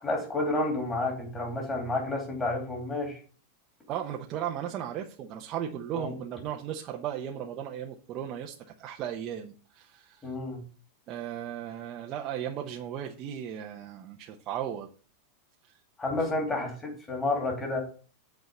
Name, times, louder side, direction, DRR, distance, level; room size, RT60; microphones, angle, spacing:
voice 1, 0.0-3.2 5.9-6.2 10.2-10.6 16.0-17.8, left 2 dB, 15° left, 1 dB, 2.8 m, -30 dB
voice 2, 3.9-10.3 11.1-14.9, right 10 dB, 30° right, 1 dB, 0.8 m, -36 dB
8.2 x 4.7 x 6.6 m, 0.39 s
supercardioid pair, 170°, 0 cm